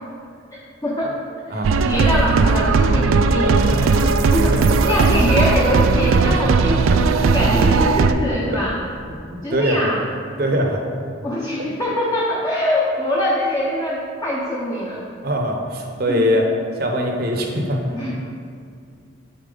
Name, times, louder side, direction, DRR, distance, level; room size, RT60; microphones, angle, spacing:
voice 1, 0.8-1.2 1.5-8.7 9.4-10.1 11.2-15.0 16.1-16.3 17.9-18.1, left 1 dB, 20° left, -5 dB, 0.6 m, -23 dB
voice 2, 1.5-1.9 3.4-3.7 4.0-4.4 4.8-5.2 6.3-7.2 8.1-8.2 8.5-8.6 9.3-9.8 10.4-10.8 11.6-11.7 15.2-16.5 16.8-17.8, equal, 50° right, 2 dB, 0.8 m, -23 dB
sound 1, 1.6-8.1, right 4 dB, 90° right, 0.3 m, -17 dB
8.6 x 4.2 x 3.8 m, 2.3 s
head